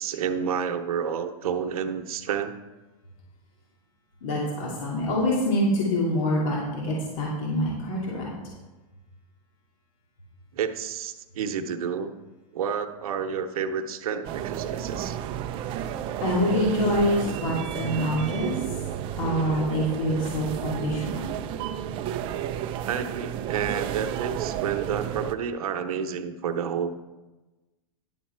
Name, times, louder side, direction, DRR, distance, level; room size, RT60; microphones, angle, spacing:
voice 1, 0.0-2.6 10.5-12.1 12.5-15.2 22.9-26.9, right 7 dB, 90° right, 6 dB, 0.9 m, -30 dB
voice 2, 4.2-8.3 15.8-15.9 16.2-18.8 19.1-21.2, left 1 dB, 65° left, -4 dB, 2.7 m, -26 dB
sound 1, 14.2-25.3, right 10 dB, 30° right, 0.5 m, -32 dB
11.0 x 7.4 x 4.5 m, 1.1 s
supercardioid pair, 150°, 18 cm